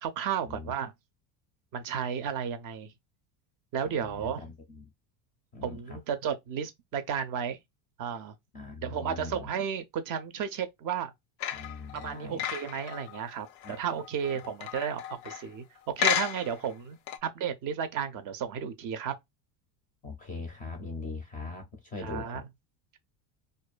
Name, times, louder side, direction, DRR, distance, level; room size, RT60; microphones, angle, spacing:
voice 1, 0.0-0.9 1.7-2.9 3.7-4.4 5.6-7.6 8.0-8.4 8.8-11.1 11.9-15.6 16.0-19.2 22.0-22.4, right 8 dB, 45° right, 0.4 m, -33 dB
voice 2, 3.8-4.9 5.5-6.0 8.5-9.5 11.5-12.4 13.6-13.8 20.0-22.4, left 3 dB, 20° left, 0.4 m, -41 dB
sound 1, 11.4-15.6 16.0-16.7 17.1-17.2, left 10 dB, 90° left, 0.6 m, -33 dB
2.5 x 2.2 x 2.3 m
cardioid pair, 135°, 47 cm